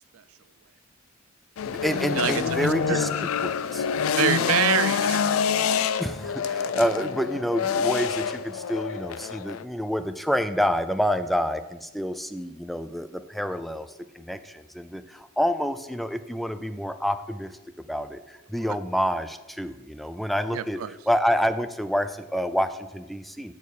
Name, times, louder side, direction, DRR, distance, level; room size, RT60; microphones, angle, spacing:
sound 1, 1.6-9.6, left 7 dB, 80° left, 0.4 m, -27 dB
voice 1, 1.6-3.9 6.0-13.9 14.1-17.6 17.9-23.5, equal, ahead, 10 dB, 0.3 m, -28 dB
voice 2, 2.2-3.1 4.2-5.4 20.5-21.0, right 10 dB, 85° right, 17 dB, 0.4 m, -26 dB
6.5 x 6.4 x 5.4 m, 1.0 s
head